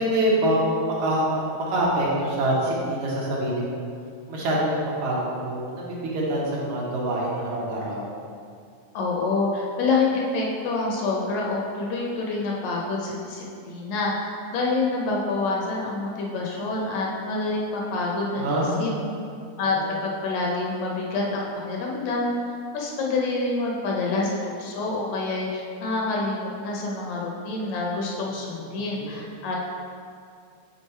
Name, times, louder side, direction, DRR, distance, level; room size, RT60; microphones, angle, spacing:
voice 1, 0.0-3.8 4.3-8.0 18.4-19.1 19.7-19.9 28.6-29.1, right 1 dB, 75° right, -5 dB, 2.4 m, -25 dB
voice 2, 8.9-18.9 19.6-19.8 20.0-22.3 22.7-29.6, left 3 dB, 70° left, -2 dB, 1.9 m, -27 dB
6.3 x 4.1 x 4.4 m, 2.3 s
omnidirectional pair, 3.4 m